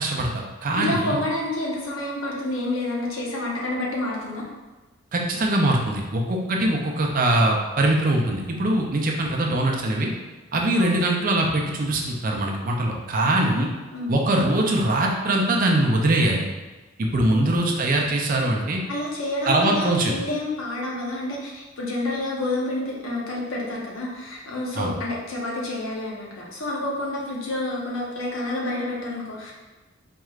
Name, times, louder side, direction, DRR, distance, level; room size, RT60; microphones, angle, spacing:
voice 1, 0.0-1.2 5.1-10.1 10.5-13.7 14.1-16.5 17.0-18.8 19.5-20.1 24.7-24.9, right 1 dB, 45° right, 0 dB, 0.5 m, -22 dB
voice 2, 0.8-4.4 10.8-11.1 13.5-13.6 13.9-14.1 17.3-17.6 18.9-29.5, left 2 dB, 85° left, -3 dB, 0.9 m, -29 dB
4.4 x 3.1 x 2.4 m, 1.2 s
head